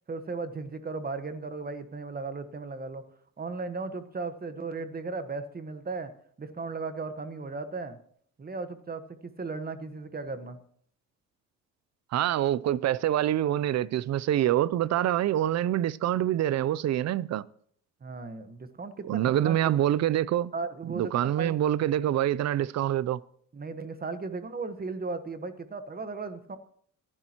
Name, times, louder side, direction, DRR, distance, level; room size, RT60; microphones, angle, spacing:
voice 1, 0.1-3.0 3.4-6.1 6.4-8.0 8.4-9.0 9.4-10.6 18.0-19.6 20.5-21.6 23.5-26.6, right 3 dB, 30° right, 1.3 m, -36 dB
voice 2, 12.1-17.4 19.1-20.5 20.9-23.2, right 12 dB, 60° right, 0.6 m, -26 dB
25.5 x 11.0 x 3.0 m
cardioid pair, 90°, 30 cm